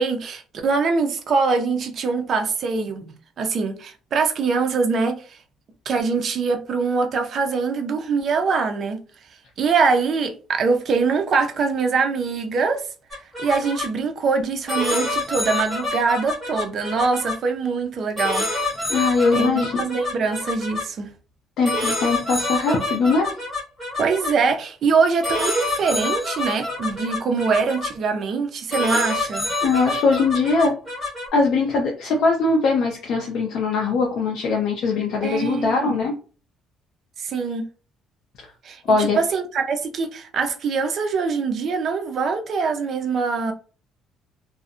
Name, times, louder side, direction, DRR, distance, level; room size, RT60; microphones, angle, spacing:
voice 1, 0.0-5.4 5.9-9.0 9.6-12.8 13.4-18.5 19.3-21.1 24.0-29.5 35.2-36.0 37.2-37.7 38.6-43.5, right 4 dB, 40° right, 0.4 m, -23 dB
sound 1, 13.1-13.9 14.7-17.3 18.2-20.8 21.6-24.3 25.2-27.9 28.7-31.3, left 2 dB, 5° left, 1.1 m, -27 dB
voice 2, 18.9-19.7 21.6-23.3 29.6-30.7 31.3-36.1 38.9-39.2, left 4 dB, 55° left, 0.5 m, -21 dB
2.6 x 2.0 x 2.4 m
cardioid pair, 160°, 0 cm